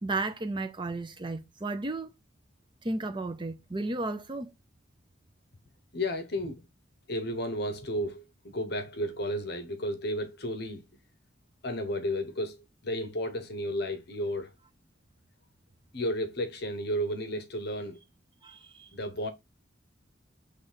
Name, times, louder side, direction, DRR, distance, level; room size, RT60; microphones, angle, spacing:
voice 1, 0.0-2.1 2.8-4.5 18.4-18.9, right 2 dB, 25° right, 0.6 m, -33 dB
voice 2, 5.9-6.6 7.1-8.2 8.5-10.8 11.6-12.6 12.8-14.5 15.9-18.0 18.9-19.3, equal, 55° left, 1.0 m, -32 dB
8.0 x 3.2 x 5.6 m
head